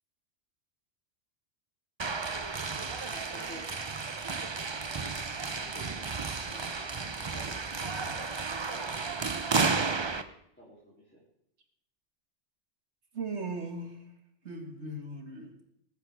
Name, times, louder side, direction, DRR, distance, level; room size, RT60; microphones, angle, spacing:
sound 1, 2.0-10.2, right 4 dB, 30° right, 0.6 m, -33 dB
voice 1, 2.7-3.7 5.6-6.9 7.2-10.0 10.5-11.2, equal, 10° left, -7 dB, 3.2 m, -52 dB
voice 2, 13.1-14.2 14.4-15.6, right 2 dB, 70° right, 4 dB, 2.2 m, -38 dB
20.5 x 9.7 x 3.5 m, 0.75 s
omnidirectional pair, 1.2 m